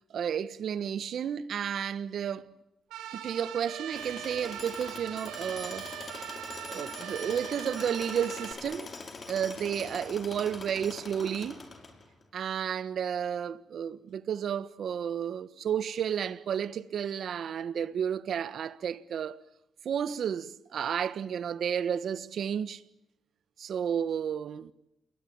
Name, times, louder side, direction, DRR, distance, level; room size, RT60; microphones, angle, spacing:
voice 1, 0.1-2.5 3.2-5.9 6.7-8.9 9.3-11.6 12.3-19.4 19.8-22.8 23.6-24.7, right 8 dB, 60° right, 1.4 m, -32 dB
sound 1, 2.9-8.5, right 10 dB, 90° right, 3.3 m, -41 dB
Tools, 3.9-12.2, left 3 dB, 35° left, 5.5 m, -44 dB
28.5 x 22.0 x 8.9 m
cardioid pair, 90°, 0 cm